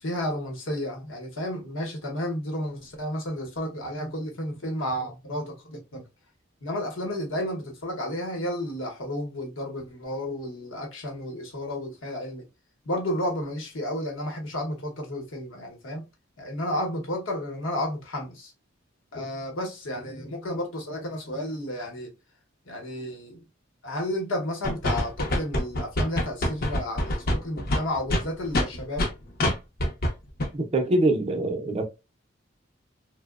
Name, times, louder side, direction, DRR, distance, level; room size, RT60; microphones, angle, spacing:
voice 1, 0.0-6.1 6.6-12.5 12.9-16.1 16.4-18.5 19.1-22.1 22.7-23.4 23.8-29.1, left 1 dB, 80° left, 0.8 m, -32 dB
sound 1, 24.6-29.1 29.4-29.5 29.8-30.1 30.4-30.5, left 1 dB, 50° left, 0.6 m, -25 dB
voice 2, 30.5-31.8, right 2 dB, 30° right, 0.5 m, -24 dB
2.8 x 2.0 x 2.3 m
head